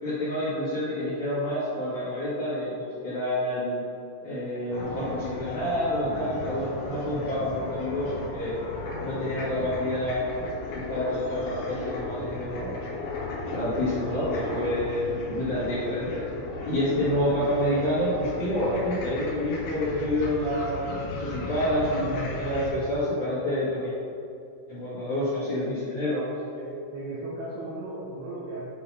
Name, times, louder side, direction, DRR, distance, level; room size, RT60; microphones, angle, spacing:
voice 1, 0.0-3.8 4.2-8.6 9.0-10.4 10.7-12.7 13.5-16.2 16.6-23.9 24.7-26.2, left 1 dB, 60° left, -12 dB, 2.2 m, -28 dB
sound 1, 4.7-22.7, left 2 dB, 75° left, 2.1 m, -35 dB
voice 2, 25.1-25.5 26.5-28.6, right 2 dB, 85° right, -7 dB, 2.3 m, -36 dB
8.6 x 3.8 x 4.2 m, 2.6 s
omnidirectional pair, 5.9 m